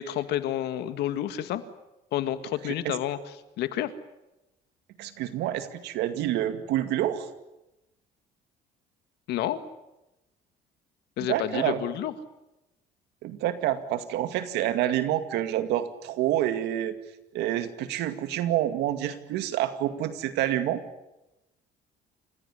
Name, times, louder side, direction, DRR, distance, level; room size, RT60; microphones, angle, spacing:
voice 1, 0.0-1.6 2.1-3.9 9.3-9.6 11.2-12.1, left 12 dB, 80° left, 11 dB, 1.9 m, -30 dB
voice 2, 2.6-3.0 5.0-7.3 11.3-11.8 13.2-17.0 17.3-20.8, right 12 dB, 85° right, 10 dB, 2.2 m, -28 dB
29.0 x 16.0 x 10.0 m, 0.95 s
cardioid pair, 110°, 17 cm